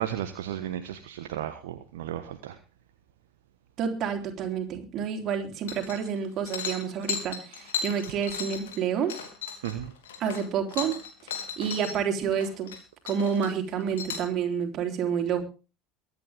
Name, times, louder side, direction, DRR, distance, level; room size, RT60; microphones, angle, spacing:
voice 1, 0.0-2.6 9.6-9.9, right 11 dB, 70° right, 7 dB, 1.2 m, -34 dB
voice 2, 3.8-9.2 10.2-11.0 11.6-12.7 13.0-15.4, right 7 dB, 45° right, 4 dB, 3.5 m, -29 dB
sound 1, 5.7-6.2 6.5-11.9 12.3-12.8 13.1-14.3, left 6 dB, 70° left, 3.3 m, -36 dB
23.0 x 9.6 x 3.5 m, 0.33 s
figure-of-eight pair, 70°, 0 cm